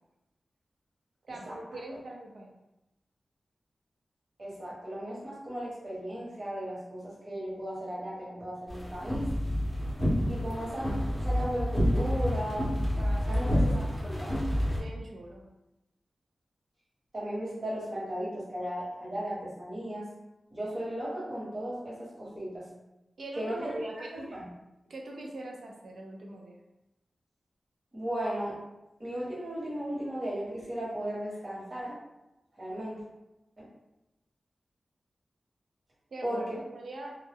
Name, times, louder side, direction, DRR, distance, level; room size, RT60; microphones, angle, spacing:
voice 1, 1.2-2.5 13.0-13.9 14.8-15.4 23.2-24.3 24.9-26.6 36.1-37.2, right 1 dB, 75° right, 0 dB, 0.5 m, -42 dB
voice 2, 4.4-9.3 10.3-12.7 13.3-13.7 14.2-14.3 17.1-20.1 20.5-22.6 23.4-23.7 24.3-24.4 27.9-28.6 29.0-32.0 32.6-33.0 33.6-33.7 36.2-36.6, equal, 40° right, -7 dB, 1.2 m, -36 dB
sound 1, 8.7-14.8, equal, ahead, 0.8 m, -28 dB
2.3 x 2.0 x 3.4 m, 0.95 s
wide cardioid pair, 115°, 0 cm